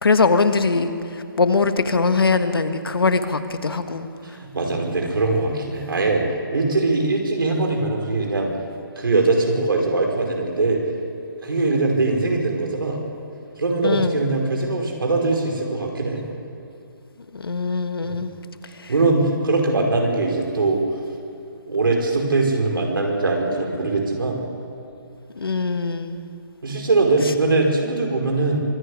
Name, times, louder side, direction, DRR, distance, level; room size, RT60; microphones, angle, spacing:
voice 1, 0.0-0.9 1.4-4.1 13.8-14.2 17.3-18.3 18.8-18.9 25.4-26.2, left 4 dB, 90° left, 9 dB, 1.6 m, -21 dB
voice 2, 4.2-6.2 6.5-8.5 9.0-10.8 11.4-13.0 13.6-16.2 18.0-18.2 18.9-20.8 21.7-24.4 26.6-28.6, right 3 dB, 70° right, 1 dB, 5.3 m, -21 dB
24.5 x 11.5 x 9.9 m, 2.6 s
hypercardioid pair, 175°, 12 cm